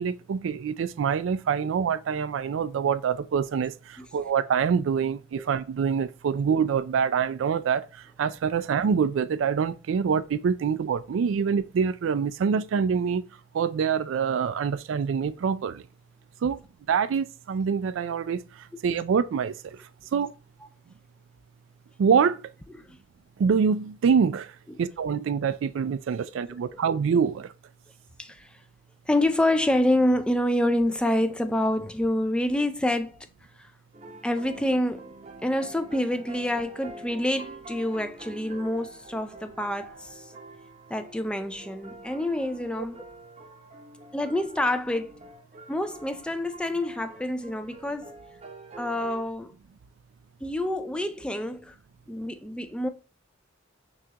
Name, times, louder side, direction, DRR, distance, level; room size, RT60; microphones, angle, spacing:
voice 1, 0.0-13.2 13.5-15.8 16.4-16.6 16.9-20.3 22.0-22.5 23.4-27.5, right 6 dB, 80° right, 0.3 m, -25 dB
voice 2, 28.2-28.5 29.1-33.1 33.6-33.7 34.2-35.1 35.4-40.3 40.9-43.0 44.1-45.2 45.7-48.1 48.8-49.5 50.4-51.8 52.1-52.9, left 1 dB, 5° left, 0.3 m, -27 dB
sound 1, 33.9-49.3, right 2 dB, 35° right, 0.7 m, -46 dB
6.0 x 2.4 x 2.8 m
head